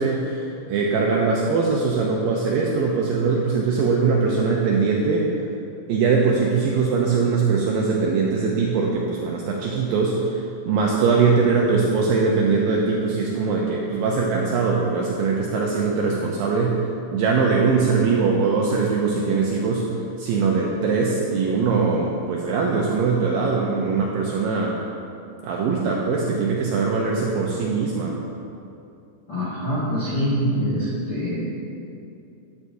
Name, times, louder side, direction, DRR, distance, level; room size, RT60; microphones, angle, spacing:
voice 1, 0.0-5.3 5.9-16.8 17.1-24.8 25.4-28.2, right 4 dB, 80° right, -2 dB, 2.1 m, -21 dB
voice 2, 29.3-31.5, equal, 65° left, -9 dB, 1.0 m, -24 dB
11.0 x 9.2 x 2.7 m, 2.6 s
omnidirectional pair, 4.7 m